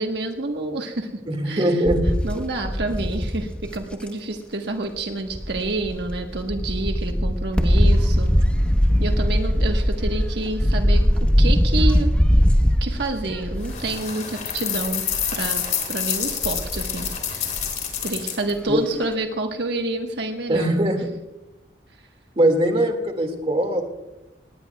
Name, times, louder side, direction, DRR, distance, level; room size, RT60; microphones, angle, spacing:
voice 1, 0.0-1.1 1.4-1.8 2.2-8.3 9.0-12.1 12.8-17.5 18.0-20.7, right 2 dB, 70° right, 3 dB, 1.3 m, -28 dB
voice 2, 1.3-2.2 8.1-8.4 18.7-18.8 20.5-21.0 22.4-23.8, right 1 dB, 35° right, 5 dB, 2.0 m, -21 dB
sound 1, 1.8-4.1 5.3-13.9 14.3-14.6 14.9-15.4 16.2-17.1 17.6-17.7 17.9-18.0, equal, 5° left, 1.0 m, -20 dB
sound 2, 13.6-18.5, left 8 dB, 45° left, 3.1 m, -28 dB
19.0 x 19.0 x 2.3 m, 0.96 s
head